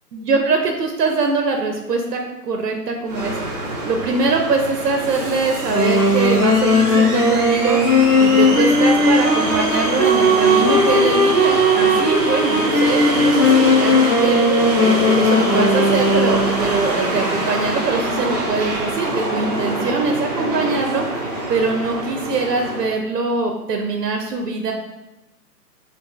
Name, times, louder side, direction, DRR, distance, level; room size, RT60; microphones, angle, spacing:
voice 1, 0.1-7.8 8.2-24.7, right 3 dB, 80° right, 3 dB, 0.6 m, -22 dB
sound 1, 3.1-22.9, right 1 dB, 25° right, 0.6 m, -25 dB
Wind instrument woodwind instrument, 5.7-16.6, left 1 dB, 20° left, 0.6 m, -17 dB
3.9 x 2.5 x 2.3 m, 1.0 s
figure-of-eight pair, 130°, 48 cm